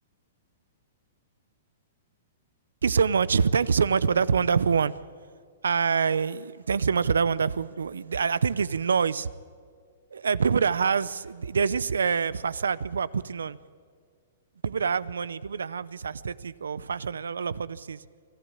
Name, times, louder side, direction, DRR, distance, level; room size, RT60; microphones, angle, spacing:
voice 1, 2.8-5.0 5.6-9.3 10.1-13.6 14.6-18.0, right 6 dB, 85° right, 19 dB, 0.6 m, -25 dB
24.5 x 13.0 x 8.8 m, 2.1 s
hypercardioid pair, 130°, 0 cm